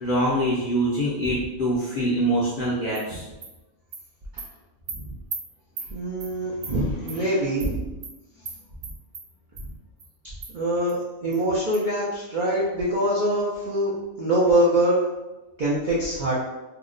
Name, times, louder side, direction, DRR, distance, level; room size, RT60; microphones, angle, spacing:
voice 1, 0.0-3.3 6.6-6.8 7.2-7.3, right 1 dB, 55° left, -7 dB, 0.6 m, -24 dB
Animal, 2.9-3.0 3.4-3.5 3.9-4.0 4.4-4.5 4.9-5.0 5.3-5.4 5.8-5.9 6.2-6.3 6.6-6.7 7.1-7.2 7.6-7.7 8.0-8.1 8.5-8.6 8.8-9.2 9.6-9.7 10.0-10.1 10.4-10.5 10.9-11.0 11.3-11.4 11.7-11.8, right 5 dB, 80° right, 1.1 m, -35 dB
voice 2, 5.9-7.9 10.5-13.9 14.2-15.0 15.6-16.3, right 1 dB, 60° right, -6 dB, 0.5 m, -24 dB
2.8 x 2.1 x 3.7 m, 1.1 s
omnidirectional pair, 1.5 m